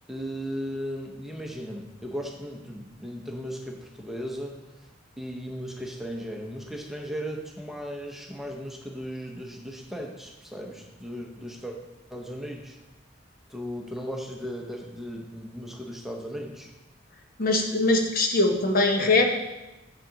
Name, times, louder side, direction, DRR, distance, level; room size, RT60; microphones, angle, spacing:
voice 1, 0.1-4.9 5.2-11.8 12.1-12.8 13.5-16.7, equal, ahead, 0 dB, 0.8 m, -36 dB
voice 2, 17.4-19.2, left 2 dB, 50° left, 3 dB, 1.0 m, -22 dB
7.4 x 6.9 x 3.9 m, 1.0 s
head